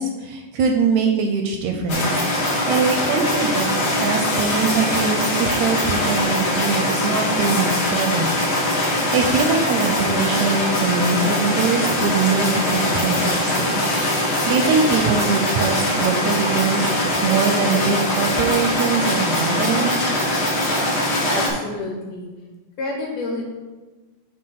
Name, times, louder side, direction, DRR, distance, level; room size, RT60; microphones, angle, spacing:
voice 1, 0.0-2.1 2.4-13.8 14.1-20.0, right 5 dB, 80° right, 4 dB, 1.7 m, -23 dB
sound 1, 1.9-21.5, left 1 dB, 70° left, 0.9 m, -22 dB
voice 2, 21.3-22.3 22.8-23.5, left 2 dB, 90° left, -1 dB, 3.0 m, -28 dB
6.9 x 3.0 x 5.5 m, 1.2 s
omnidirectional pair, 3.6 m